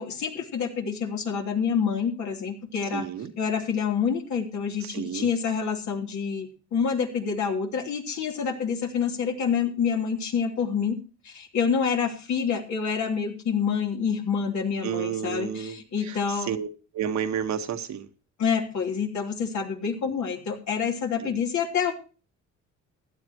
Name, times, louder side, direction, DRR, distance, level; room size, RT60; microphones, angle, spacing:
voice 1, 0.0-3.0 3.4-11.0 11.2-16.5 18.4-21.9, left 6 dB, 70° left, 3.4 m, -27 dB
voice 2, 2.9-3.3 4.8-5.3 14.8-16.7 16.9-18.1 20.0-20.2 21.2-21.4, right 8 dB, 65° right, 1.6 m, -31 dB
16.0 x 11.5 x 3.0 m
cardioid pair, 90°, 30 cm